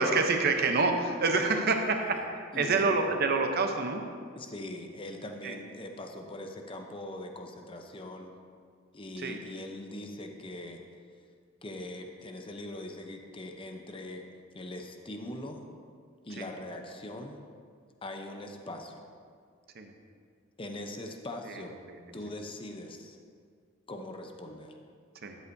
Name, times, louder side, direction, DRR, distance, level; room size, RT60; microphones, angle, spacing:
voice 1, 0.0-4.0 5.4-5.6 9.2-9.4 16.4-16.5 19.7-19.9 21.9-22.0 25.2-25.4, right 3 dB, 50° right, 5 dB, 0.8 m, -27 dB
voice 2, 1.5-2.3 2.5-3.0 4.4-8.4 8.9-10.8 11.6-14.2 14.5-15.6 16.2-17.4 18.0-19.0 20.6-21.8 22.1-23.2 23.9-24.8, left 1 dB, 25° left, 3 dB, 0.7 m, -41 dB
12.5 x 8.1 x 2.7 m, 2.1 s
head